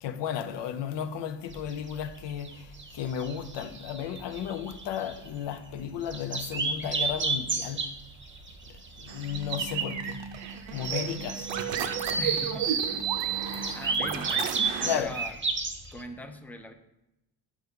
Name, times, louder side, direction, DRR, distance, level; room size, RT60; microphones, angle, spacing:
voice 1, 0.0-2.7 2.9-7.9 9.0-10.2 10.7-11.5 13.3-13.8 14.8-15.2, left 8 dB, 70° left, 0.6 m, -34 dB
sound 1, 1.5-16.0, right 4 dB, 25° right, 0.7 m, -33 dB
sound 2, 9.1-15.0, right 7 dB, 75° right, 0.7 m, -31 dB
voice 2, 12.2-12.8 13.5-14.5 14.8-15.4 15.9-16.7, left 1 dB, 5° left, 0.5 m, -41 dB
6.5 x 4.6 x 3.6 m
cardioid pair, 75°, 45 cm